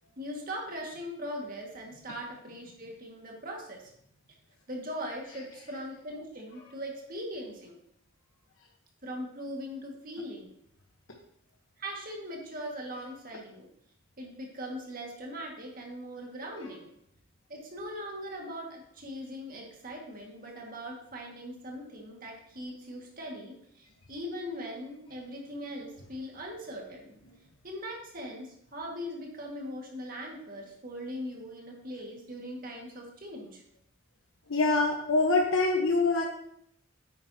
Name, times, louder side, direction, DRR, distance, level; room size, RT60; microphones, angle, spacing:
voice 1, 0.2-3.9 4.7-7.7 9.0-10.5 11.8-13.7 14.2-16.9 17.5-27.2 27.6-33.6, equal, 45° right, 0 dB, 1.9 m, -40 dB
voice 2, 34.5-36.2, left 3 dB, 85° left, 0 dB, 1.2 m, -24 dB
9.6 x 8.8 x 2.9 m, 0.72 s
head